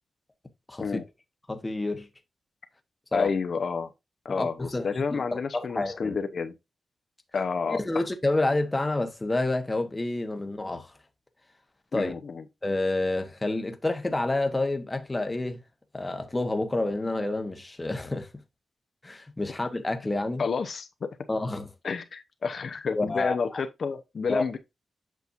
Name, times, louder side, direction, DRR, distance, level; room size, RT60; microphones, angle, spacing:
voice 1, 1.5-2.1 3.1-3.3 4.4-6.2 7.7-10.9 11.9-12.1 12.6-15.6 15.9-18.3 19.0-20.4 21.3-21.7 22.9-23.4 24.3-24.4, left 2 dB, 15° left, 1.1 m, -29 dB
voice 2, 3.1-3.9 4.2-6.5 7.3-8.1 11.9-12.4 20.4-20.9 21.8-24.6, left 5 dB, 55° left, 0.8 m, -30 dB
8.3 x 6.0 x 2.6 m
wide cardioid pair, 125°, 0 cm